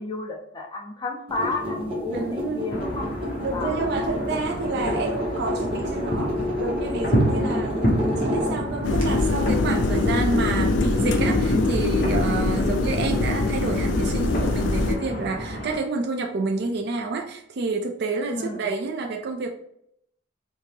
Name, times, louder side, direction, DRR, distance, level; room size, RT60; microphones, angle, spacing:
voice 1, 0.0-3.1 3.5-4.2 4.6-4.8 12.5-12.7 18.3-18.7, left 2 dB, 25° left, 1 dB, 0.6 m, -32 dB
sound 1, 1.3-9.0, left 1 dB, 30° right, 0.9 m, -30 dB
voice 2, 2.1-2.6 3.4-19.5, right 3 dB, 60° right, 2 dB, 0.4 m, -29 dB
sound 2, 2.7-15.8, equal, 50° left, 0.9 m, -29 dB
sound 3, 8.8-14.9, left 3 dB, 75° left, 0.5 m, -23 dB
3.6 x 2.8 x 2.9 m, 0.73 s
head